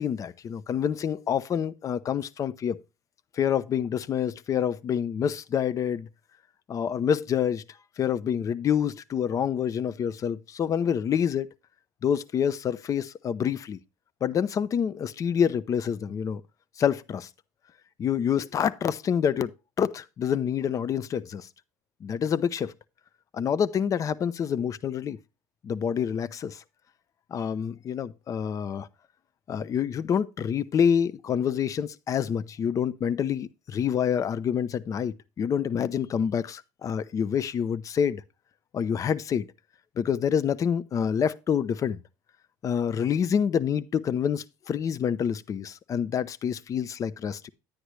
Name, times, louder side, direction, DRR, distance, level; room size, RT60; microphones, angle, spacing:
voice 1, 0.0-2.8 3.4-6.1 6.7-7.6 8.0-11.5 12.0-13.8 14.2-16.4 16.8-17.3 18.0-19.5 19.8-21.5 22.0-22.7 23.3-25.2 25.6-26.6 27.3-28.9 29.5-38.2 38.7-39.5 40.0-42.0 42.6-47.5, left 8 dB, 40° left, 0.7 m, -27 dB
10.5 x 9.6 x 3.2 m
supercardioid pair, 95°, 9 cm